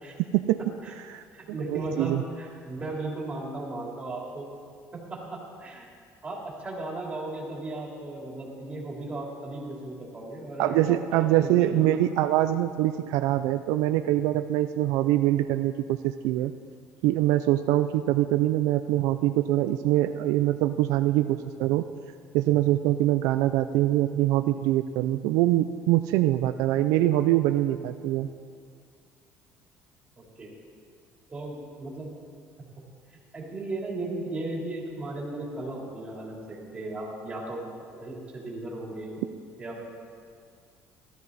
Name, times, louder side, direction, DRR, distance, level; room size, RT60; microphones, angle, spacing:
voice 1, 0.2-0.6 1.1-2.2 10.6-16.5 17.0-21.9 22.3-28.3 39.2-39.3, right 14 dB, 85° right, 9 dB, 0.4 m, -24 dB
voice 2, 1.3-4.5 4.9-5.9 6.2-12.0 30.2-30.5 31.3-32.1 33.3-39.2 39.6-39.9, right 2 dB, 20° right, -3 dB, 3.5 m, -36 dB
15.5 x 13.0 x 4.1 m, 2.2 s
cardioid pair, 125°, 6 cm